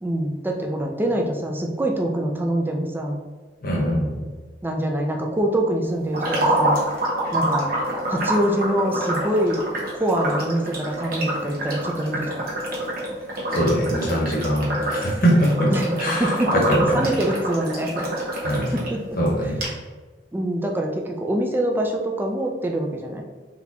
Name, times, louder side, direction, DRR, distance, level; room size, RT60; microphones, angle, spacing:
voice 1, 0.0-3.2 4.6-6.8 7.3-7.7 8.1-9.6 10.0-12.3 15.7-15.9 16.2-18.0 18.7-19.5 20.3-23.2, right 1 dB, 10° right, 1 dB, 0.4 m, -24 dB
voice 2, 3.6-4.1 13.5-15.7 16.0-16.3 16.7-17.0 18.4-18.7 19.2-19.6, equal, 55° left, -2 dB, 1.1 m, -22 dB
sound 1, 6.1-18.9 19.3-19.4 19.6-19.7, right 1 dB, 55° right, 1.1 m, -26 dB
4.1 x 3.5 x 2.9 m, 1.4 s
head